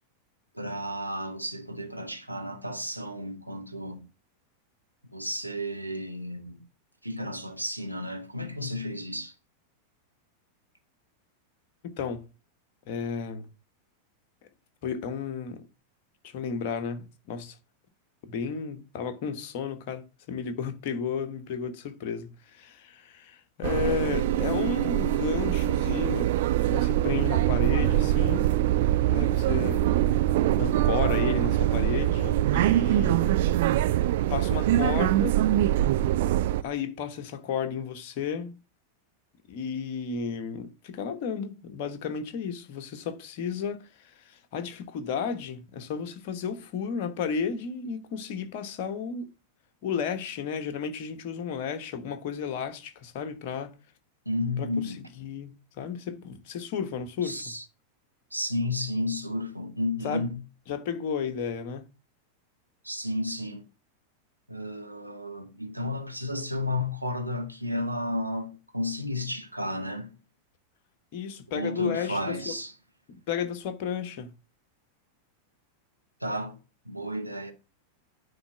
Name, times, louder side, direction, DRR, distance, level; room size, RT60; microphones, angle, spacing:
voice 1, 0.5-4.1 5.1-6.6 7.0-9.3 54.2-55.0 57.2-57.6 58.3-60.4 62.8-63.7 64.5-70.1 71.5-72.7 76.2-76.6 76.8-77.5, left 1 dB, 90° right, 1.2 m, -32 dB
voice 2, 11.8-12.3 12.9-13.5 14.8-15.7 16.2-17.6 18.3-28.5 29.1-29.9 30.6-33.4 34.3-35.4 36.6-38.6 39.5-49.3 49.8-53.7 54.6-57.5 60.0-60.2 60.7-61.8 71.1-72.5 73.1-74.3, left 6 dB, 45° left, 1.2 m, -33 dB
sound 1, 23.6-36.6, right 13 dB, 55° right, 0.5 m, -24 dB
9.6 x 3.5 x 6.0 m
figure-of-eight pair, 90°, 0 cm